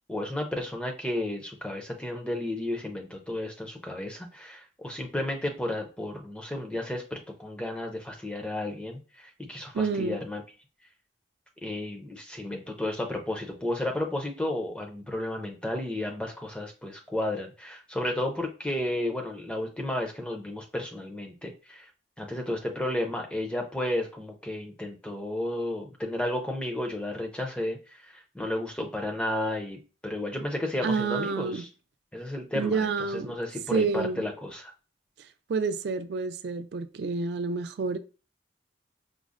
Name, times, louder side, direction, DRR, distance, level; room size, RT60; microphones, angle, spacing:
voice 1, 0.1-10.4 11.6-21.9 22.2-31.7 32.1-34.7, left 1 dB, 5° left, 0.4 m, -33 dB
voice 2, 9.7-10.2 30.8-31.6 32.5-33.4 33.7-34.2 35.5-38.0, right 4 dB, 55° right, 0.3 m, -28 dB
5.0 x 2.0 x 2.4 m
head